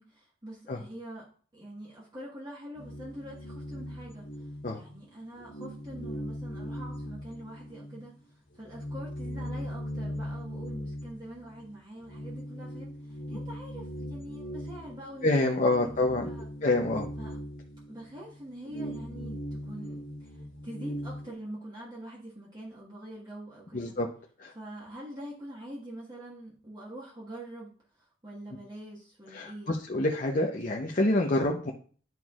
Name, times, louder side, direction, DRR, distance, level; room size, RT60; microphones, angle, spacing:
voice 1, 0.0-16.5 17.2-17.4 17.9-23.9 24.5-29.8, right 1 dB, 25° right, -6 dB, 1.4 m, -45 dB
sound 1, 2.7-5.0 5.3-8.1 8.4-21.3, equal, 80° left, 1.4 m, -39 dB
voice 2, 15.2-16.3 16.6-17.1 23.7-24.1 24.4-24.5 29.3-31.7, left 2 dB, 45° left, 1 dB, 0.7 m, -27 dB
11.0 x 4.5 x 2.4 m, 0.44 s
head